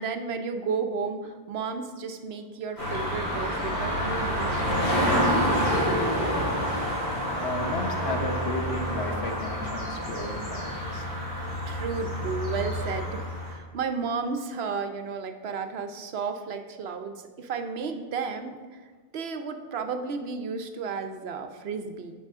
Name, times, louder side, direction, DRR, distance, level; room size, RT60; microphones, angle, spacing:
voice 1, 0.0-6.3 11.7-18.8 19.1-22.1, right 5 dB, 75° right, 7 dB, 0.9 m, -33 dB
sound 1, 2.8-13.5, equal, 40° left, 3.3 m, -28 dB
voice 2, 7.3-11.1, left 2 dB, 75° left, 3 dB, 1.3 m, -33 dB
14.0 x 5.5 x 3.6 m, 1.5 s
omnidirectional pair, 1.1 m